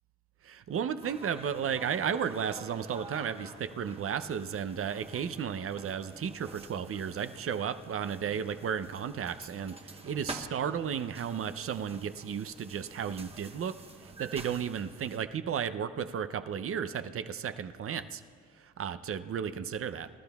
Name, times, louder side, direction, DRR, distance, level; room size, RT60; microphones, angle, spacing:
voice 1, 0.4-13.7 14.0-18.2 18.6-20.1, right 7 dB, 45° right, 11 dB, 0.6 m, -34 dB
sound 1, 1.0-15.2, right 3 dB, 20° right, 1.1 m, -48 dB
25.0 x 12.0 x 2.3 m, 2.3 s
cardioid pair, 90°, 30 cm